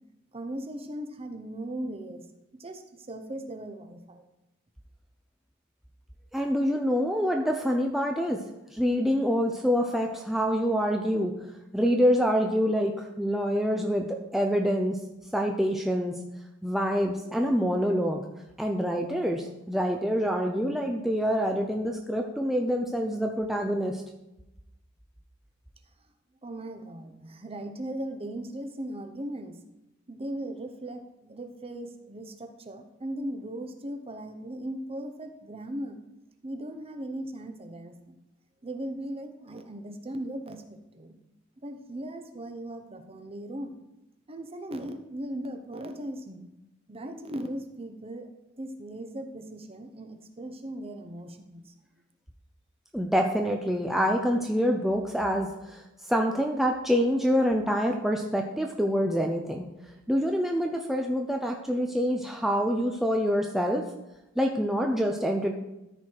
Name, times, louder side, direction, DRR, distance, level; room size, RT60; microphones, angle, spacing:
voice 1, 0.3-2.2 2.6-4.2 26.4-29.6 30.1-36.0 36.4-38.2 38.6-41.1 41.6-43.7 44.3-46.5 46.9-48.3 48.6-51.7, right 1 dB, 30° right, 6 dB, 0.9 m, -38 dB
voice 2, 6.3-8.4 8.7-11.3 11.7-15.0 15.3-16.2 16.6-18.2 18.6-24.0 52.9-55.8 56.1-59.7 60.1-63.8 64.4-65.6, equal, ahead, 2 dB, 0.5 m, -26 dB
13.0 x 4.8 x 4.5 m, 0.94 s
head